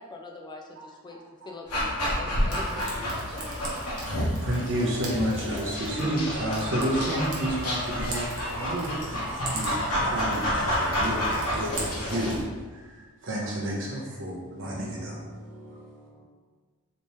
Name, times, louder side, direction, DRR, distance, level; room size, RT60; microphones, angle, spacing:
voice 1, 0.0-1.2 1.5-3.6, left 2 dB, 20° left, 1 dB, 0.3 m, -42 dB
voice 2, 0.8-1.5 4.4-12.4 12.7-15.2, right 1 dB, 55° right, -4 dB, 0.6 m, -31 dB
Dog, 1.7-12.4, equal, 90° left, 1.0 m, -29 dB
Frying (food), 2.5-12.4, right 3 dB, 90° right, 0.8 m, -42 dB
voice 3, 14.7-16.2, right 1 dB, 5° right, -10 dB, 0.7 m, -42 dB
3.4 x 2.9 x 2.9 m, 1.4 s
head